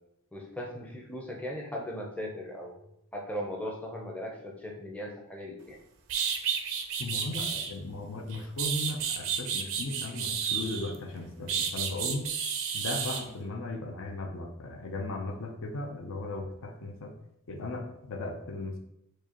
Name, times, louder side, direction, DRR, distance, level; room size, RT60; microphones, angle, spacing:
voice 1, 0.3-5.8, equal, 5° left, -1 dB, 0.6 m, -38 dB
sound 1, 5.7-5.8 6.1-7.7 8.3-10.9 11.5-13.2, right 7 dB, 65° right, 0.4 m, -31 dB
voice 2, 7.0-12.3 12.7-17.1 17.5-18.8, left 2 dB, 65° left, 4 dB, 0.6 m, -36 dB
4.7 x 2.4 x 2.9 m, 0.80 s
head